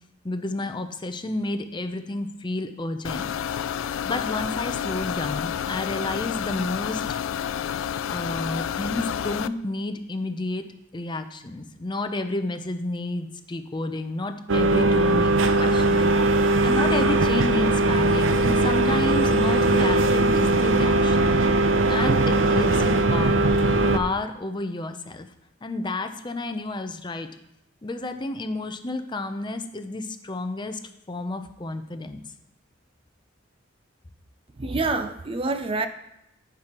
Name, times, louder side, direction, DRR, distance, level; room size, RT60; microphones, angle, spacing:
voice 1, 0.2-3.3 4.0-7.0 8.1-10.6 10.9-21.3 21.9-23.4 23.9-25.3 25.6-27.3 27.8-30.8 31.1-32.3, left 2 dB, 25° left, 7 dB, 0.6 m, -31 dB
sound 1, 3.0-9.5, left 9 dB, 80° left, 0.3 m, -29 dB
sound 2, 14.5-24.0, right 2 dB, 75° right, 0.6 m, -20 dB
voice 2, 34.6-35.9, right 3 dB, 30° right, 9 dB, 0.4 m, -26 dB
14.5 x 6.0 x 3.0 m, 0.83 s
head